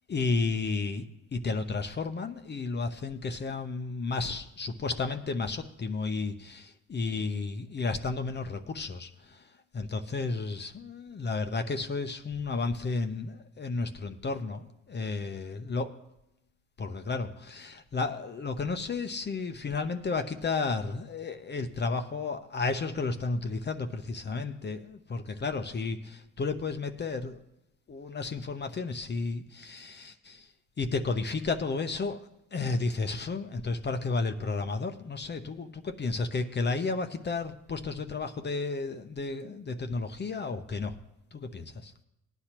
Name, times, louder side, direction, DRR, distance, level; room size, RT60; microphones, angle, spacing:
voice 1, 0.1-9.4 9.7-15.9 16.8-27.4 27.9-30.5 30.8-40.9 41.3-41.9, left 3 dB, 35° left, 6 dB, 0.8 m, -32 dB
18.5 x 9.9 x 3.0 m, 0.85 s
cardioid pair, 90°, 30 cm